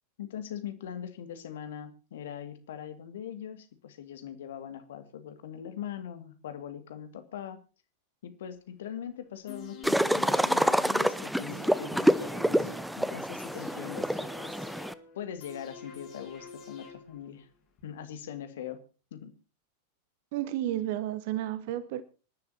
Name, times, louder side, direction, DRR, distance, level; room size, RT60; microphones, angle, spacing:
voice 1, 0.2-7.6 8.2-14.6 15.1-17.5 17.8-18.8 19.1-19.3, left 9 dB, 60° left, 9 dB, 2.1 m, -41 dB
sound 1, 9.5-17.4 17.8-17.9, left 3 dB, 40° left, 8.0 m, -46 dB
sound 2, 9.8-14.9, equal, ahead, 0.8 m, -27 dB
voice 2, 20.3-22.0, right 13 dB, 50° right, 16 dB, 1.0 m, -32 dB
25.5 x 11.5 x 2.8 m, 0.33 s
figure-of-eight pair, 90°, 0 cm